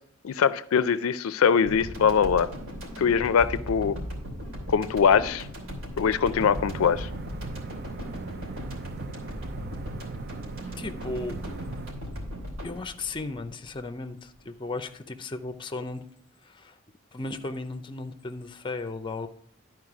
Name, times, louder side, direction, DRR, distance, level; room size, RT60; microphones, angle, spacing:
voice 1, 0.2-2.5 3.0-4.0 4.7-5.5 6.0-7.1, left 6 dB, 90° left, 15 dB, 0.4 m, -22 dB
sound 1, 1.7-14.1, equal, 70° right, 2.9 m, -38 dB
sound 2, 6.4-11.9, right 4 dB, 50° right, 0.5 m, -39 dB
voice 2, 10.8-11.4 12.6-16.0 16.4-16.8 17.1-19.3, left 3 dB, 25° left, 8 dB, 0.6 m, -35 dB
11.5 x 4.7 x 4.8 m, 0.64 s
head